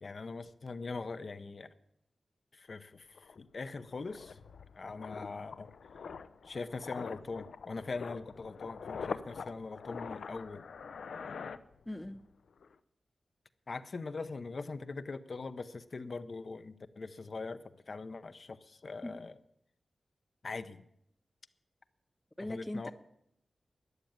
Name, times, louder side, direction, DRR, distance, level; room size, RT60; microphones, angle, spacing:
voice 1, 0.0-1.7 2.5-4.4 4.7-5.7 6.4-10.7 13.7-19.3 20.4-20.8 22.5-22.9, left 3 dB, 45° left, 11 dB, 0.7 m, -42 dB
sound 1, 2.8-2.9 3.2-12.2 12.5-12.7, left 5 dB, 85° left, 0.7 m, -44 dB
voice 2, 11.9-12.2 19.0-19.1 22.4-22.9, left 1 dB, 10° left, 10 dB, 0.6 m, -39 dB
13.5 x 10.5 x 8.8 m, 0.76 s
wide cardioid pair, 165°, 0 cm